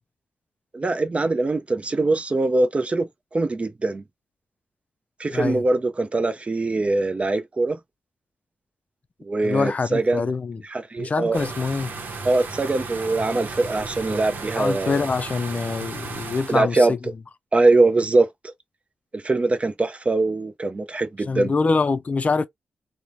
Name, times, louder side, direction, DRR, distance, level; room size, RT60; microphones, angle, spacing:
voice 1, 0.7-4.0 5.2-7.8 9.2-10.2 10.7-11.5 12.2-15.0 16.5-16.9 17.5-18.3 19.1-21.5, right 2 dB, 35° right, 0.6 m, -22 dB
voice 2, 5.3-5.6 9.4-10.6 11.0-11.9 14.6-17.0 21.2-22.5, left 4 dB, 40° left, 0.4 m, -24 dB
sound 1, 11.3-16.6, right 4 dB, 65° right, 0.8 m, -34 dB
3.1 x 2.0 x 2.4 m
cardioid pair, 55°, 4 cm